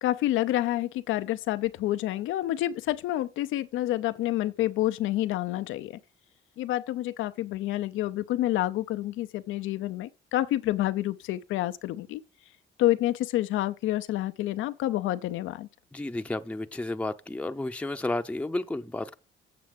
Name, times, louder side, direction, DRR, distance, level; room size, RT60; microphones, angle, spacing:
voice 1, 0.0-6.0 6.6-12.2 12.8-15.7, left 14 dB, 90° left, 0.6 m, -28 dB
voice 2, 15.9-19.1, left 2 dB, 5° left, 0.7 m, -32 dB
7.7 x 6.9 x 5.2 m
cardioid pair, 90°, 20 cm